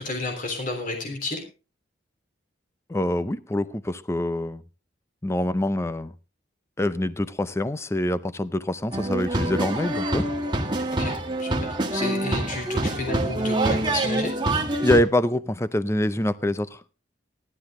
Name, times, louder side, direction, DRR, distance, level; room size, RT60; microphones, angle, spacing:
voice 1, 0.0-1.4 10.9-11.1 11.4-14.3, left 2 dB, 45° left, 3.4 m, -31 dB
voice 2, 2.9-4.6 5.2-6.1 6.8-10.3 14.8-16.8, left 1 dB, 15° left, 0.5 m, -25 dB
sound 1, 8.9-15.0, right 1 dB, 25° right, 1.5 m, -26 dB
15.0 x 11.5 x 3.7 m
head